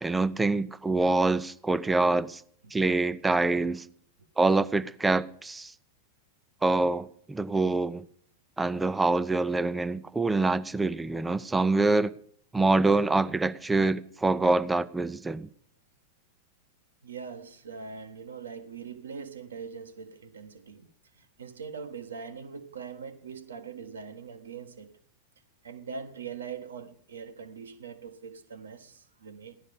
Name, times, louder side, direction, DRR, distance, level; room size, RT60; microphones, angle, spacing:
voice 1, 0.0-2.4 2.7-3.8 4.4-5.7 6.6-8.0 8.6-12.1 12.5-15.5, right 3 dB, 10° right, 0.6 m, -25 dB
voice 2, 17.0-20.9 21.1-24.9 25.6-29.6, right 6 dB, 70° right, 1.3 m, -42 dB
16.0 x 12.0 x 5.3 m
figure-of-eight pair, 90°, 0 cm